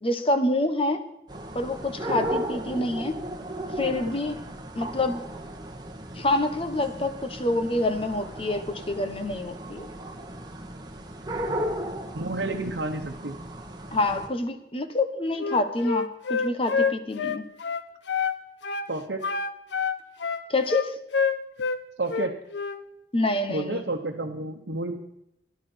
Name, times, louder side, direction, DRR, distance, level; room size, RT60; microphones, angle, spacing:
voice 1, 0.0-1.0 1.5-3.2 3.8-4.4 4.7-5.2 6.1-9.9 13.9-17.4 20.5-20.9 23.1-23.8, left 2 dB, 30° left, 8 dB, 1.2 m, -27 dB
sound 1, 1.3-14.3, right 1 dB, 25° right, 1.7 m, -35 dB
voice 2, 12.1-13.4 18.9-19.2 22.0-22.3 23.5-25.0, right 2 dB, 75° right, 0 dB, 1.1 m, -31 dB
Wind instrument woodwind instrument, 15.4-18.4 18.6-18.9 19.2-21.8 22.1-22.8, left 5 dB, 85° left, 0.8 m, -27 dB
17.0 x 11.5 x 4.5 m, 0.85 s
head